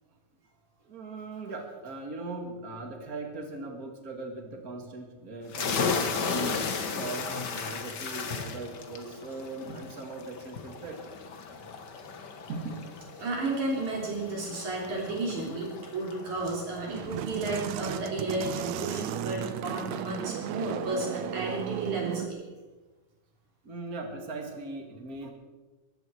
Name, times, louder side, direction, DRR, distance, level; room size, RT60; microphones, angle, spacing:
voice 1, 0.8-6.6 6.9-11.0 12.5-12.9 14.5-14.6 23.6-25.3, right 2 dB, 30° right, 3 dB, 2.2 m, -39 dB
sound 1, 5.5-18.8, left 5 dB, 60° left, 1.1 m, -36 dB
voice 2, 13.2-22.4, right 2 dB, 60° right, -2 dB, 4.5 m, -32 dB
sound 2, 16.9-22.3, right 11 dB, 85° right, 1.6 m, -35 dB
20.0 x 15.0 x 4.7 m, 1.2 s
omnidirectional pair, 4.0 m